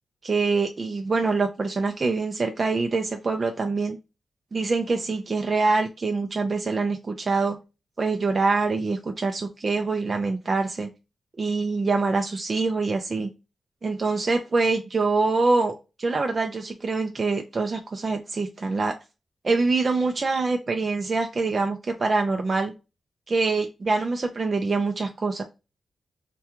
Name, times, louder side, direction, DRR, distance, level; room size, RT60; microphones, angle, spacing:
voice 1, 0.2-4.0 4.5-7.6 8.0-10.9 11.4-13.3 13.8-18.9 19.4-22.7 23.3-25.4, right 3 dB, 35° right, 4 dB, 0.4 m, -25 dB
2.9 x 2.2 x 3.5 m, 0.28 s
wide cardioid pair, 125°, 0 cm